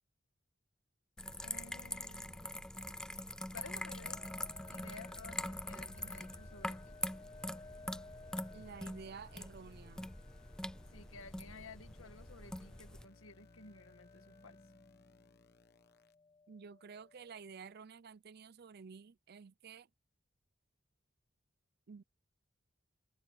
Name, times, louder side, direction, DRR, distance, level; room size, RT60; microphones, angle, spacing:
sound 1, 1.2-13.0, left 1 dB, 5° left, 0.4 m, -44 dB
voice 1, 1.4-2.7 3.5-4.3 4.7-6.8 10.9-14.6, left 4 dB, 85° left, 1.9 m, -54 dB
sound 2, 4.0-17.8, left 3 dB, 25° left, 1.5 m, -60 dB
sound 3, 6.2-16.1, left 2 dB, 55° left, 1.0 m, -65 dB
voice 2, 8.5-10.1 16.5-19.9 21.9-22.0, right 5 dB, 50° right, 0.5 m, -52 dB
head